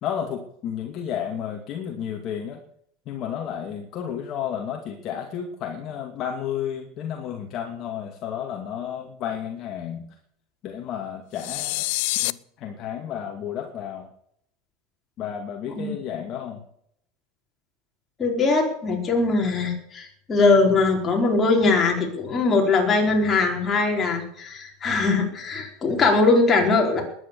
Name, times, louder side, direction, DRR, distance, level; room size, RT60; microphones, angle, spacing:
voice 1, 0.0-2.6 3.1-10.1 10.6-11.9 12.2-14.1 15.2-16.6, left 9 dB, 35° left, 2 dB, 2.3 m, -32 dB
sound 1, 11.4-12.3, left 22 dB, 60° left, 0.6 m, -26 dB
voice 2, 18.2-27.0, left 3 dB, 15° left, 0 dB, 4.6 m, -21 dB
20.5 x 9.9 x 7.0 m, 0.69 s
supercardioid pair, 165°, 0 cm